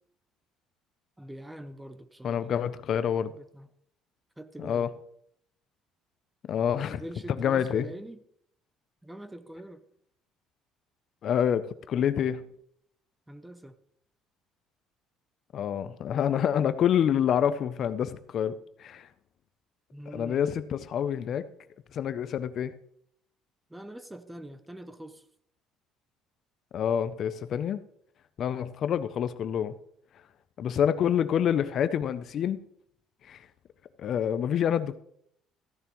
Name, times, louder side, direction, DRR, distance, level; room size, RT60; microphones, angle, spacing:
voice 1, 1.2-2.5 3.3-3.7 4.4-4.9 6.9-8.2 9.0-9.8 13.3-13.7 19.9-20.5 23.7-25.2, right 1 dB, 5° right, 0.5 m, -44 dB
voice 2, 2.2-3.3 4.6-4.9 6.5-7.0 7.4-7.9 11.2-12.5 15.5-19.1 20.1-21.5 21.9-22.8 26.7-27.8 28.4-29.8 30.6-32.6 33.2-33.5 34.0-35.0, left 9 dB, 45° left, 0.4 m, -27 dB
14.0 x 10.0 x 3.0 m
cardioid pair, 155°, 0 cm